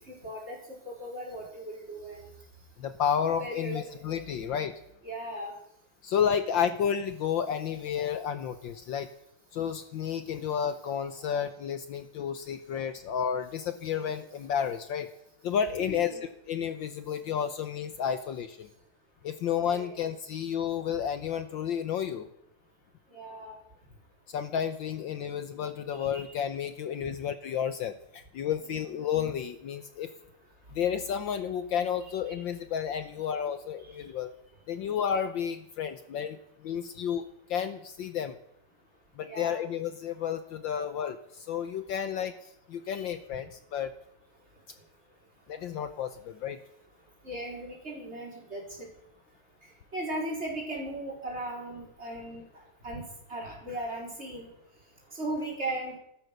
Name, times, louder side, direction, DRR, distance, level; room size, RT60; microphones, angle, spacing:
voice 1, 0.2-2.3 3.4-3.9 5.0-5.5 15.9-16.2 19.7-20.0 23.1-23.6 26.0-26.3 28.7-28.8 39.2-39.6 43.0-43.1 47.2-48.6 49.9-52.4 52.8-53.0 53.3-54.5 55.1-55.9, right 1 dB, 30° right, -1 dB, 4.6 m, -37 dB
voice 2, 2.8-4.8 6.0-9.1 9.5-15.1 15.4-16.2 16.5-18.7 19.2-22.3 24.3-30.1 30.7-34.3 34.7-38.4 39.2-43.9 45.5-46.6, left 8 dB, 65° left, 10 dB, 1.5 m, -31 dB
15.0 x 13.0 x 6.6 m, 0.76 s
omnidirectional pair, 2.4 m